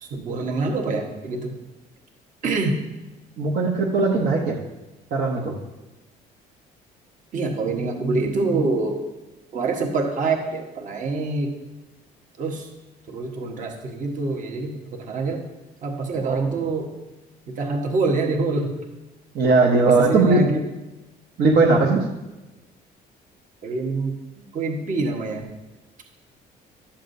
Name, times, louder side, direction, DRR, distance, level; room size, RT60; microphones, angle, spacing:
voice 1, 0.0-1.5 2.4-2.7 7.3-9.0 9.5-11.6 12.4-12.7 13.1-15.5 15.8-16.9 17.5-18.8 19.8-20.6 23.6-25.5, right 3 dB, 50° right, 2 dB, 1.3 m, -25 dB
voice 2, 3.4-4.6 5.1-5.6 16.2-16.5 19.3-20.4 21.4-22.0, right 3 dB, 65° right, -2 dB, 1.1 m, -19 dB
11.5 x 7.2 x 2.7 m, 1.0 s
cardioid pair, 110°, 17 cm